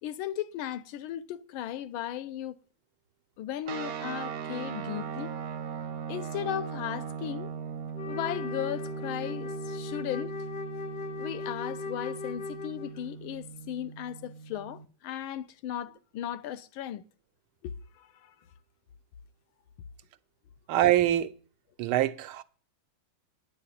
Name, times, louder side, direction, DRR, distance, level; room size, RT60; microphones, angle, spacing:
voice 1, 0.0-2.6 3.4-5.4 6.1-7.5 8.1-10.3 11.2-17.0 17.6-18.4, left 11 dB, 80° left, 1.5 m, -36 dB
sound 1, 3.7-14.9, right 6 dB, 60° right, 1.0 m, -39 dB
Wind instrument woodwind instrument, 7.9-13.1, left 4 dB, 60° left, 1.4 m, -38 dB
voice 2, 20.7-21.3 21.8-22.4, right 13 dB, 85° right, 1.6 m, -24 dB
9.7 x 6.2 x 8.4 m
omnidirectional pair, 2.3 m